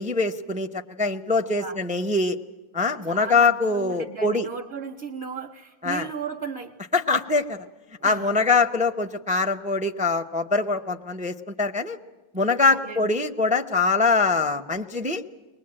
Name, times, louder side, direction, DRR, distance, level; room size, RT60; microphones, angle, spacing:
voice 1, 0.0-2.4 2.7-4.5 5.8-6.1 6.9-7.6 8.0-12.0 12.3-15.2, left 3 dB, 10° right, 8 dB, 0.4 m, -23 dB
voice 2, 3.1-6.7 8.0-8.5 12.6-13.1, right 6 dB, 50° right, 3 dB, 1.1 m, -36 dB
22.5 x 20.0 x 8.7 m, 1.2 s
omnidirectional pair, 1.5 m